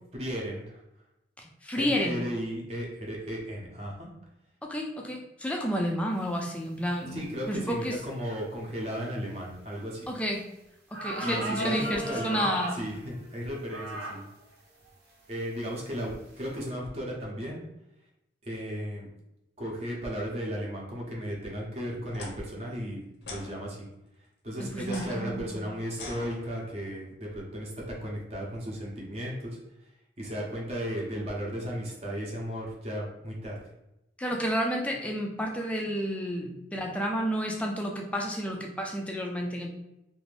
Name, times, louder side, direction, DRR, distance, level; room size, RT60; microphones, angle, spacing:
voice 1, 0.1-0.8 1.7-4.1 7.1-10.1 11.2-14.3 15.3-17.6 18.4-19.1 19.6-23.0 23.3-23.9 24.4-29.6 30.2-33.6, equal, 35° right, -2 dB, 0.7 m, -35 dB
voice 2, 1.4-2.2 4.6-7.2 7.5-8.0 10.1-10.5 10.9-12.7 24.6-25.7 34.2-39.7, equal, 5° left, 1 dB, 0.3 m, -31 dB
sound 1, 10.3-10.4 10.9-12.8 13.7-14.2 14.8-14.9 15.6-15.9, right 1 dB, 85° right, 0.9 m, -34 dB
sound 2, 22.1-22.3 23.2-23.5 24.8-26.8, left 2 dB, 60° left, 0.6 m, -43 dB
2.6 x 2.5 x 3.2 m, 0.88 s
head